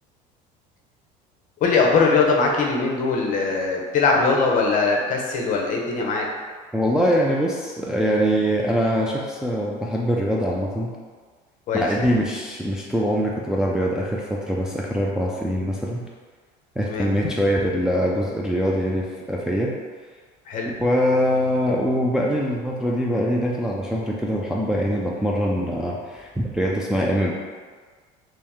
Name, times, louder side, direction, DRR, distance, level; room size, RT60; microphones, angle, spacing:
voice 1, 1.6-6.3 11.7-11.9 16.8-17.1 20.5-20.7, left 4 dB, 45° left, 0 dB, 0.7 m, -21 dB
voice 2, 6.7-10.9 11.7-16.0 16.8-19.7 20.8-27.3, equal, 5° right, -3 dB, 0.3 m, -23 dB
3.1 x 2.8 x 3.5 m, 1.5 s
cardioid pair, 125°, 18 cm